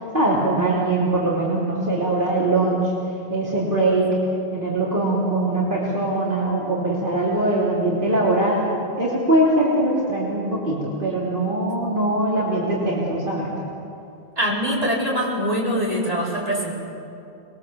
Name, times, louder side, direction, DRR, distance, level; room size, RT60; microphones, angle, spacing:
voice 1, 0.1-2.9 3.3-4.2 4.5-13.5, right 2 dB, 55° right, -6 dB, 3.6 m, -22 dB
voice 2, 14.4-16.7, equal, 35° right, -5 dB, 5.0 m, -23 dB
25.5 x 22.5 x 7.2 m, 2.6 s
omnidirectional pair, 1.1 m